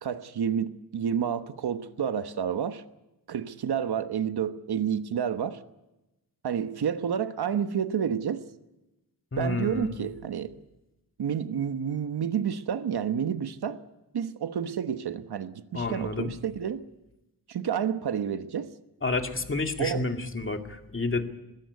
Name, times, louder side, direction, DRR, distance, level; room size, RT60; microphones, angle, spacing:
voice 1, 0.0-2.8 3.3-5.6 6.4-8.5 9.4-10.6 11.2-13.8 14.1-16.8 17.5-18.7 19.8-20.0, right 8 dB, 75° right, 1.1 m, -29 dB
voice 2, 9.3-9.9 15.7-16.3 19.0-21.3, left 3 dB, 30° left, 2.1 m, -30 dB
21.0 x 16.0 x 9.6 m
wide cardioid pair, 105°, 39 cm